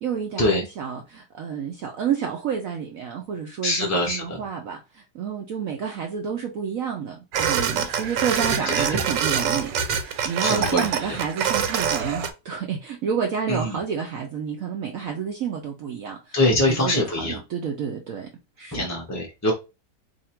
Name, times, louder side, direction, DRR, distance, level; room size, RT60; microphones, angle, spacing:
voice 1, 0.0-16.4 16.7-18.3 18.6-18.9, right 7 dB, 70° right, 0.8 m, -30 dB
voice 2, 3.6-4.4 8.9-9.0 10.4-10.9 13.5-13.8 16.3-17.4 18.7-19.5, left 1 dB, 15° left, 0.5 m, -23 dB
sound 1, 7.3-12.3, right 7 dB, 85° right, 1.3 m, -25 dB
2.8 x 2.6 x 4.3 m
omnidirectional pair, 1.9 m